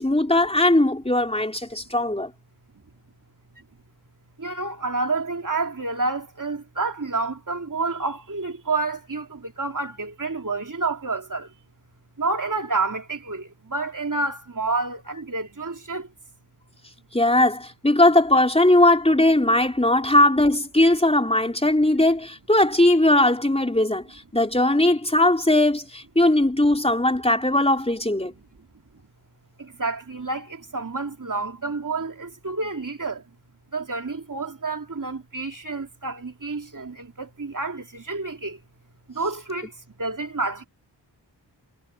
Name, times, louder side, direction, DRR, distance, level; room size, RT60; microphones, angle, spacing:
voice 1, 0.0-2.3 17.1-28.3, left 1 dB, 15° left, 3.8 m, -19 dB
voice 2, 4.4-11.5 12.2-16.1 28.4-28.5 29.6-33.2 33.7-38.6 39.1-40.7, right 3 dB, 45° right, 3.0 m, -29 dB
cardioid pair, 40°, 45 cm